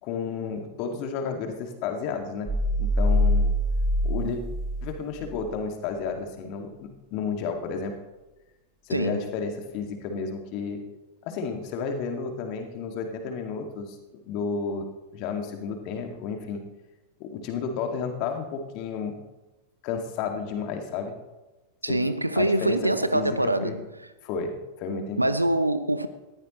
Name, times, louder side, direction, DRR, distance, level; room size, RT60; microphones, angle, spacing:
voice 1, 0.0-3.5 4.0-4.4 4.8-7.9 8.9-10.8 11.3-14.0 14.3-14.8 15.1-16.6 17.2-19.2 19.8-21.1 21.9-22.0 22.4-23.8 24.2-25.3, left 5 dB, 45° left, 2.2 m, -32 dB
sound 1, 2.5-5.4, left 1 dB, 15° right, 5.4 m, -24 dB
voice 2, 8.9-9.2 21.8-23.8 25.2-26.1, right 1 dB, 85° right, 0.7 m, -24 dB
19.0 x 14.5 x 3.2 m
figure-of-eight pair, 90°, 0 cm